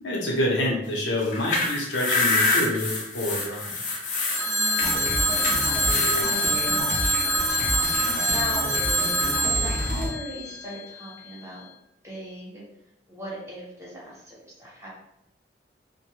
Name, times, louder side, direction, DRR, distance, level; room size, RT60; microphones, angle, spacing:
voice 1, 0.0-3.7, left 1 dB, 85° left, -2 dB, 0.7 m, -27 dB
sound 1, 1.2-6.2, left 3 dB, 45° left, 0.5 m, -26 dB
Telephone, 4.3-11.1, right 1 dB, 90° right, 0.9 m, -25 dB
voice 2, 4.4-7.5 8.3-8.7 9.4-11.6 12.0-12.6 13.1-14.9, equal, 15° right, -6 dB, 0.8 m, -39 dB
sound 2, 4.8-10.1, equal, 45° right, 0.5 m, -31 dB
2.6 x 2.1 x 3.0 m, 0.82 s
head